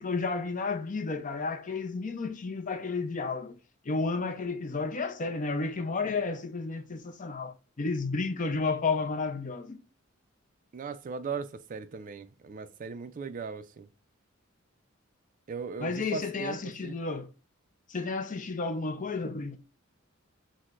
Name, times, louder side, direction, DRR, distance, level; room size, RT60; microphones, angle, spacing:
voice 1, 0.0-3.6 3.8-9.8 15.8-17.3 17.9-19.6, left 4 dB, 40° left, 0.5 m, -32 dB
voice 2, 10.7-13.9 15.5-17.0, right 5 dB, 40° right, 0.4 m, -38 dB
6.1 x 2.1 x 2.4 m
head